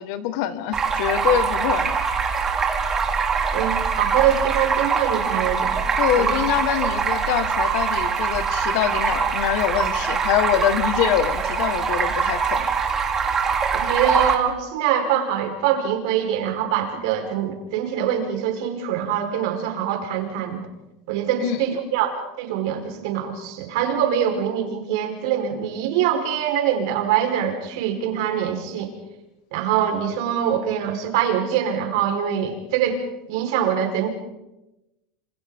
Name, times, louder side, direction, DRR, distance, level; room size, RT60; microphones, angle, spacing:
voice 1, 0.0-2.0 6.0-12.7 21.4-21.6, left 11 dB, 65° left, 10 dB, 1.7 m, -24 dB
Stream, 0.7-14.3, right 5 dB, 20° right, 2.8 m, -23 dB
voice 2, 3.5-5.9 6.2-6.3 8.9-9.0 13.7-20.6 21.1-28.9 29.5-33.0 33.3-34.1, right 9 dB, 75° right, 3 dB, 4.7 m, -24 dB
27.5 x 26.5 x 3.9 m, 0.96 s
supercardioid pair, 145°, 2 cm